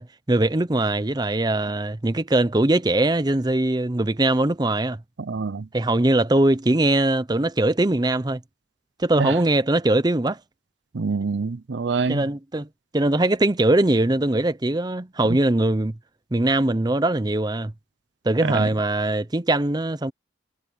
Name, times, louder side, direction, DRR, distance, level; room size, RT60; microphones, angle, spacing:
voice 1, 0.0-5.0 5.7-8.4 9.0-10.4 12.1-12.7 12.9-16.0 16.3-17.7 18.2-20.1, right 2 dB, 20° right, 0.7 m, -21 dB
voice 2, 5.2-5.7 9.2-9.4 10.9-12.2 18.5-18.7, right 4 dB, 75° right, 0.6 m, -25 dB
head